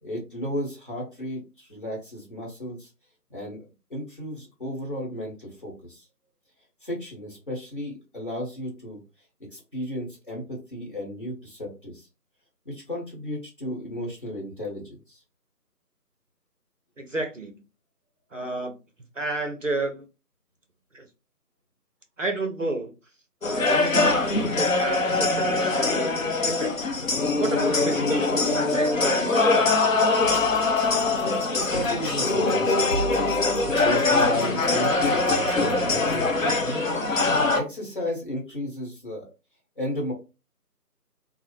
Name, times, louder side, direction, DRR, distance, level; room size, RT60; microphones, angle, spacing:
voice 1, 0.0-2.9 3.3-3.6 3.9-6.1 6.8-9.0 9.5-12.1 12.6-15.2 31.2-32.9 33.1-33.4 33.8-36.8 37.5-39.2 39.8-40.1, left 1 dB, 35° left, -3 dB, 1.0 m, -34 dB
voice 2, 17.0-17.6 18.3-18.7 19.2-20.1 20.9-21.1 22.2-22.9 23.4-26.1 26.4-26.7 27.4-30.0, right 2 dB, 55° right, 5 dB, 0.5 m, -31 dB
sound 1, 23.4-37.6, left 3 dB, 55° left, 0.6 m, -23 dB
sound 2, 30.2-36.2, right 4 dB, 35° right, 0.9 m, -38 dB
2.6 x 2.0 x 3.0 m, 0.30 s
figure-of-eight pair, 160°, 48 cm